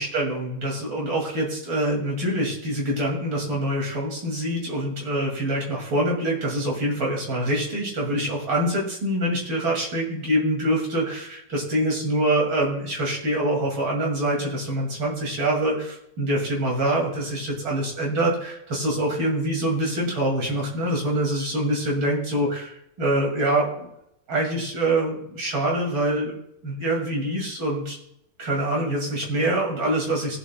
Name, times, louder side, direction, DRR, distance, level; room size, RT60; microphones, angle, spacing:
voice 1, 0.0-23.9 24.3-26.4 26.6-28.0 28.4-30.4, right 1 dB, 85° right, -2 dB, 3.1 m, -25 dB
18.5 x 7.8 x 2.2 m, 0.78 s
omnidirectional pair, 2.1 m